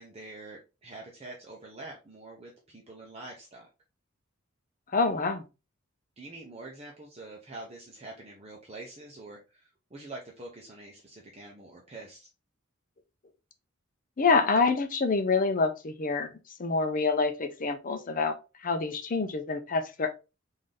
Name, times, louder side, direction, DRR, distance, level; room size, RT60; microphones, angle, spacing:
voice 1, 0.0-3.7 6.2-12.3, right 2 dB, 30° right, 0.7 m, -45 dB
voice 2, 4.9-5.4 14.2-18.4 18.6-20.1, left 4 dB, 40° left, 0.6 m, -27 dB
3.9 x 2.7 x 3.2 m
head